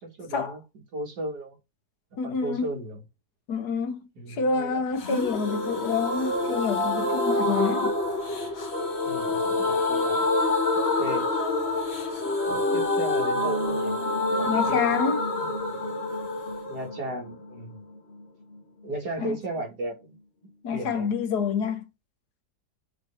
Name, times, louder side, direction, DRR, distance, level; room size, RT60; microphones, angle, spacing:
voice 1, 0.0-1.6 2.2-3.0 4.2-4.8 9.0-10.3 10.7-11.3 12.5-14.0 14.3-15.0 16.7-17.8 18.8-20.2 20.7-21.1, right 1 dB, 70° right, 2.6 m, -35 dB
voice 2, 2.2-2.7 3.5-7.9 14.5-15.2 19.2-19.4 20.6-21.9, left 5 dB, 70° left, 1.5 m, -28 dB
sound 1, 5.0-18.6 18.9-19.0 19.2-19.3, left 2 dB, 40° left, 1.6 m, -27 dB
6.5 x 3.3 x 5.4 m
omnidirectional pair, 1.8 m